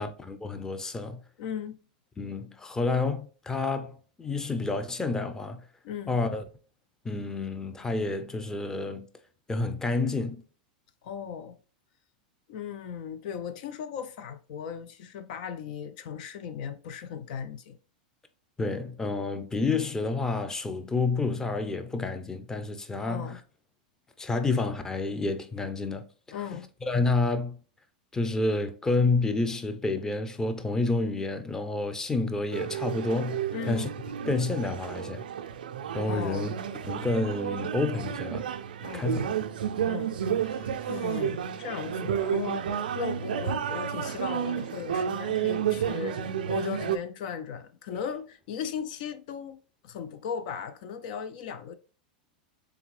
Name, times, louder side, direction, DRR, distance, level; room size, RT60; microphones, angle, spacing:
voice 1, 0.0-1.2 2.2-5.6 6.1-6.4 7.0-9.1 9.5-10.4 18.6-23.4 24.2-26.1 26.9-27.6 28.1-33.9 34.2-35.2 35.9-36.5 36.9-38.5 38.9-39.2, left 3 dB, 10° left, 0.6 m, -29 dB
voice 2, 1.4-1.8 5.8-6.2 11.0-11.6 12.5-17.8 23.1-23.4 26.3-26.7 33.5-33.9 36.1-36.5 38.8-39.4 39.8-49.6 49.8-51.7, left 7 dB, 65° left, 0.4 m, -37 dB
sound 1, 32.5-47.0, right 9 dB, 85° right, 0.4 m, -31 dB
3.7 x 3.5 x 3.1 m
hypercardioid pair, 110°, 5 cm